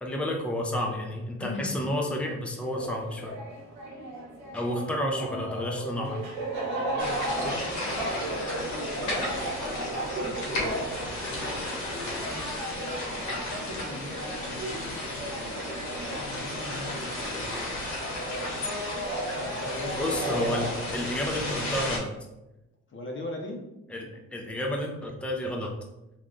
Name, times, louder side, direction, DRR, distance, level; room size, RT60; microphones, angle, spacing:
voice 1, 0.0-3.4 4.5-6.2 20.0-20.7 20.9-22.1 23.9-25.7, left 1 dB, 5° left, 0 dB, 0.6 m, -31 dB
voice 2, 1.4-1.8 4.4-6.2 6.8-12.5 13.2-15.6 16.1-17.8 18.2-18.6 19.2-21.7 22.9-23.6, left 1 dB, 40° left, 1 dB, 0.8 m, -40 dB
sound 1, 2.7-21.0, right 1 dB, 80° right, 1.0 m, -36 dB
sound 2, 7.0-22.0, left 1 dB, 80° left, 1.4 m, -34 dB
3.4 x 2.4 x 3.8 m, 0.93 s
cardioid pair, 90°, 30 cm